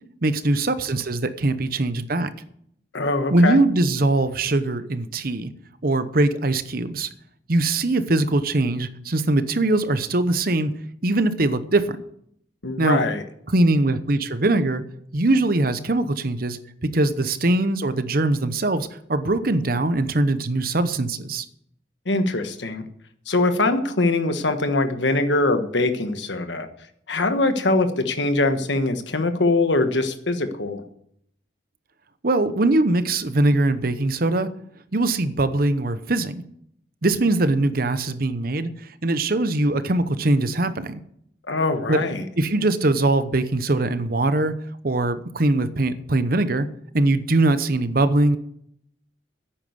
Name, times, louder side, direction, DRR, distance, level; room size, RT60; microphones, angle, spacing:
voice 1, 0.2-2.3 3.3-5.5 5.8-7.1 7.5-10.7 11.0-12.0 12.8-13.0 13.5-14.8 15.1-21.5 32.2-34.5 34.9-36.4 37.0-41.0 41.9-42.0 42.4-44.5 44.8-46.7 46.9-48.4, right 2 dB, 50° right, 12 dB, 0.9 m, -21 dB
voice 2, 2.9-3.6 12.6-13.2 22.1-22.8 23.3-26.7 27.1-30.8 41.5-42.2, left 2 dB, 75° left, 8 dB, 1.3 m, -22 dB
10.5 x 8.8 x 7.9 m, 0.71 s
head